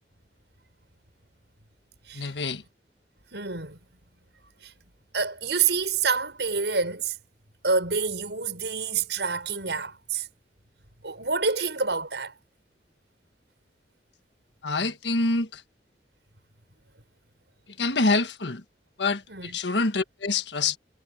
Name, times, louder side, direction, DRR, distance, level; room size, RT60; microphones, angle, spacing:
voice 1, 2.1-2.6 14.6-15.6 17.8-18.6 19.0-20.8, left 3 dB, 85° left, 1.5 m, -26 dB
voice 2, 3.3-3.8 4.6-4.7 5.1-7.2 7.6-10.3 11.0-12.3 19.3-19.6, right 5 dB, 80° right, 6.5 m, -27 dB
head